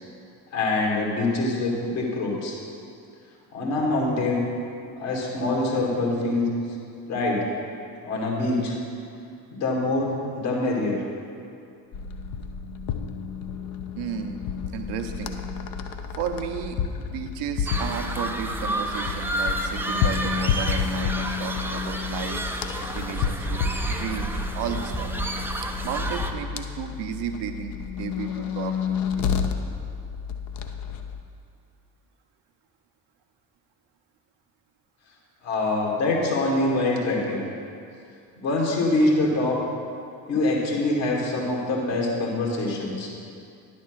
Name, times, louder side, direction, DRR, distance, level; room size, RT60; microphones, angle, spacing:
voice 1, 0.5-2.6 3.5-4.4 5.0-6.5 7.1-7.5 8.0-8.8 9.5-11.0 35.4-37.4 38.4-39.6 40.3-43.1, left 2 dB, 65° left, -2 dB, 2.0 m, -24 dB
sound 1, 11.9-31.2, left 7 dB, 45° left, 0.7 m, -31 dB
voice 2, 14.0-14.4 14.7-15.4 16.2-22.4 22.9-25.1 25.8-29.3, right 8 dB, 55° right, 5 dB, 0.8 m, -33 dB
sound 2, 17.7-26.3, right 1 dB, 5° right, 0.5 m, -30 dB
10.0 x 4.3 x 6.3 m, 2.4 s
figure-of-eight pair, 50°, 49 cm